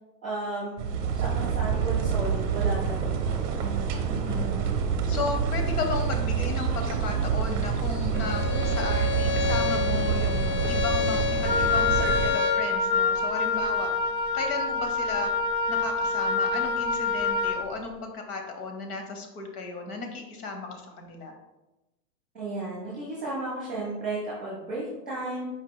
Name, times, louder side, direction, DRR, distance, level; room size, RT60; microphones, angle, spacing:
voice 1, 0.2-0.8 1.1-3.3 3.6-4.0 22.3-25.5, right 2 dB, 5° right, -15 dB, 0.3 m, -34 dB
sound 1, 0.8-12.3, right 6 dB, 50° right, 0.6 m, -27 dB
voice 2, 4.1-4.6 5.1-13.9 14.3-15.3 15.7-21.3, left 4 dB, 65° left, 4 dB, 1.1 m, -34 dB
Bowed string instrument, 8.1-12.7, left 7 dB, 50° left, 0.7 m, -30 dB
Wind instrument woodwind instrument, 11.4-17.7, left 4 dB, 90° left, 0.8 m, -26 dB
4.5 x 2.7 x 4.0 m, 1.0 s
supercardioid pair, 165°, 49 cm